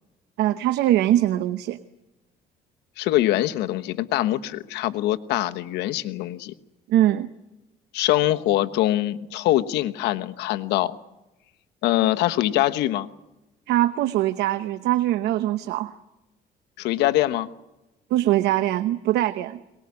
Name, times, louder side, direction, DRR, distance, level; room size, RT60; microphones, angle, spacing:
voice 1, 0.4-1.8 6.9-7.3 13.7-15.9 18.1-19.6, right 14 dB, 85° right, 11 dB, 0.9 m, -22 dB
voice 2, 3.0-6.5 7.9-11.0 11.8-13.1 16.8-17.5, left 14 dB, 85° left, 10 dB, 1.2 m, -23 dB
23.0 x 19.5 x 9.6 m, 1.0 s
cardioid pair, 110°, 17 cm